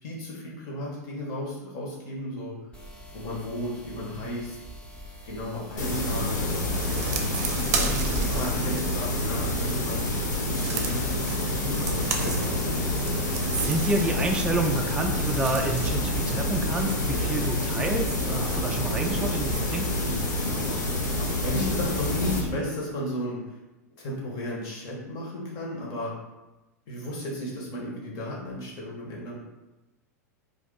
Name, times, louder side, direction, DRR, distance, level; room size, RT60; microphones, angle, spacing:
voice 1, 0.0-2.5 3.1-4.6 5.2-6.3 7.0-10.0 10.5-12.6 21.2-23.6 24.0-26.1 26.9-29.3, left 1 dB, 40° left, -3 dB, 1.1 m, -34 dB
sound 1, 2.7-22.1, equal, 10° left, 0.8 m, -42 dB
sound 2, 5.8-22.4, left 1 dB, 75° left, 0.8 m, -28 dB
sound 3, 6.8-9.5 10.1-16.1, right 5 dB, 55° right, 0.6 m, -35 dB
voice 2, 13.5-19.9, right 2 dB, 10° right, 2 dB, 0.3 m, -28 dB
2.5 x 2.5 x 4.0 m, 1.0 s
figure-of-eight pair, 95°, 9 cm